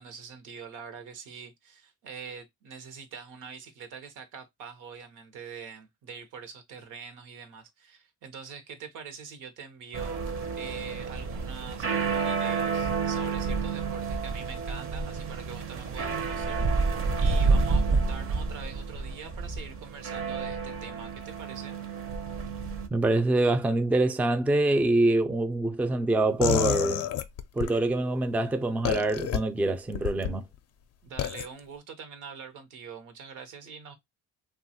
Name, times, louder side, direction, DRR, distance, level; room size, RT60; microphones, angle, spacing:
voice 1, 0.0-10.2 10.6-21.8 31.0-33.9, right 6 dB, 85° right, 0.8 m, -44 dB
sound 1, 9.9-22.9, right 4 dB, 45° right, 0.6 m, -29 dB
voice 2, 22.9-27.1 27.6-30.4, right 2 dB, 5° right, 0.3 m, -25 dB
sound 2, 26.4-27.8 28.8-29.4 29.9-30.3 31.2-31.5, left 11 dB, 55° left, 0.4 m, -28 dB
2.9 x 2.3 x 2.7 m
cardioid pair, 90°, 30 cm